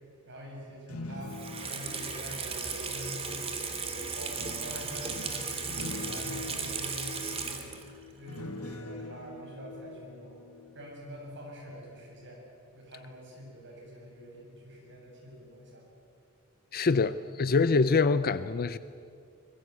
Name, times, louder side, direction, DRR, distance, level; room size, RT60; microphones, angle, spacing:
voice 1, 0.3-10.3 10.7-12.5 12.7-15.9, equal, 55° right, -1 dB, 7.6 m, -45 dB
sound 1, 0.7-3.6 4.4-11.3 11.7-12.0, left 2 dB, 85° left, 1.8 m, -44 dB
Water tap faucet / Sink (filling or washing), 1.2-8.0 8.3-8.4, right 5 dB, 30° right, 2.5 m, -36 dB
voice 2, 16.7-18.8, left 4 dB, 45° left, 14 dB, 0.6 m, -25 dB
25.0 x 21.5 x 8.1 m, 2.4 s
head